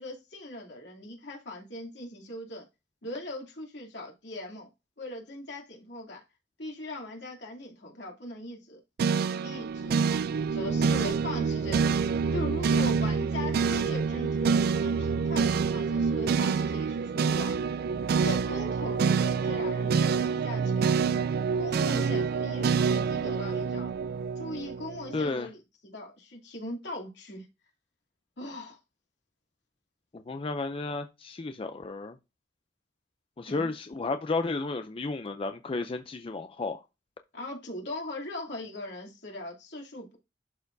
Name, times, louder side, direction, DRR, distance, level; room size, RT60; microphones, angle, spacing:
voice 1, 0.0-2.6 3.0-4.7 5.0-6.2 6.6-8.8 9.4-10.1 10.5-12.0 12.3-17.6 18.2-21.1 21.6-23.9 24.4-25.6 25.8-27.5 28.4-28.8 33.5-33.7 37.3-40.2, left 1 dB, 70° left, 2.8 m, -40 dB
sound 1, 9.0-25.3, right 5 dB, 55° right, 0.4 m, -27 dB
voice 2, 25.1-25.5 30.1-32.2 33.4-36.8, left 3 dB, 30° left, 0.4 m, -32 dB
11.5 x 4.4 x 2.6 m
head